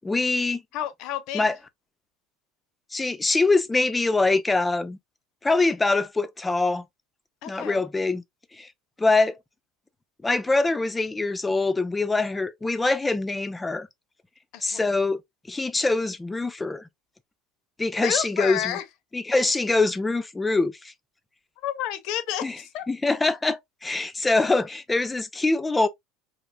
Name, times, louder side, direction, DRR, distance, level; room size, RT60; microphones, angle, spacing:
voice 1, 0.0-0.6 1.3-1.5 2.9-5.0 5.4-6.8 7.5-8.2 8.5-8.7 9.0-9.4 10.2-13.9 14.6-15.2 15.5-16.9 17.8-18.8 19.1-20.9 22.4-22.6 22.9-25.9, left 3 dB, 10° left, 0.4 m, -24 dB
voice 2, 0.7-1.5 7.4-7.8 14.5-14.9 18.0-18.8 21.6-22.8, left 11 dB, 60° left, 0.6 m, -30 dB
3.2 x 2.4 x 2.3 m
supercardioid pair, 125°, 0 cm